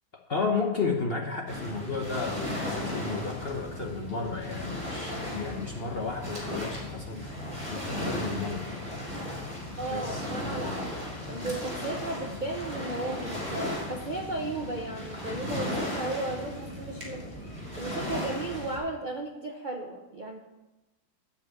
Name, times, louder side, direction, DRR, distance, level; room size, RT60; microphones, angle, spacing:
voice 1, 0.3-8.7 9.8-10.3, left 4 dB, 40° left, 1 dB, 0.9 m, -33 dB
Waves surf, 1.5-18.8, left 1 dB, 25° right, 3.0 m, -36 dB
voice 2, 9.8-10.9 11.3-17.3 17.7-20.4, right 2 dB, 45° right, 2 dB, 0.6 m, -35 dB
12.0 x 5.4 x 8.2 m, 1.0 s
omnidirectional pair, 2.2 m